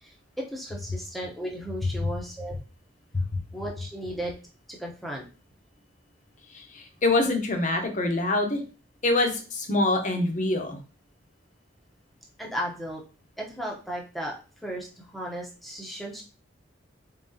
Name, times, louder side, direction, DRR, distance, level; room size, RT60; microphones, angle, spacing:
voice 1, 0.0-2.6 3.5-4.3 4.7-5.2 12.4-13.0 13.4-14.3 14.6-16.2, equal, ahead, -2 dB, 0.8 m, -35 dB
voice 2, 6.5-8.6 9.0-10.8, left 2 dB, 40° left, 5 dB, 0.8 m, -25 dB
4.0 x 3.8 x 2.7 m, 0.34 s
head